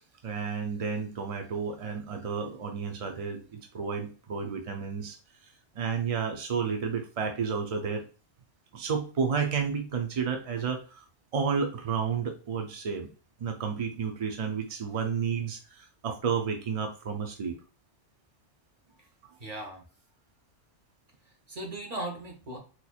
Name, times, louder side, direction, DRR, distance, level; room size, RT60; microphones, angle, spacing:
voice 1, 0.2-5.2 5.4-8.0 8.7-11.0 11.3-13.1 13.4-17.6, right 6 dB, 60° right, 4 dB, 0.3 m, -31 dB
voice 2, 19.4-19.8 21.2-22.6, right 1 dB, 35° right, 1 dB, 1.0 m, -38 dB
4.2 x 2.9 x 2.3 m, 0.36 s
omnidirectional pair, 1.2 m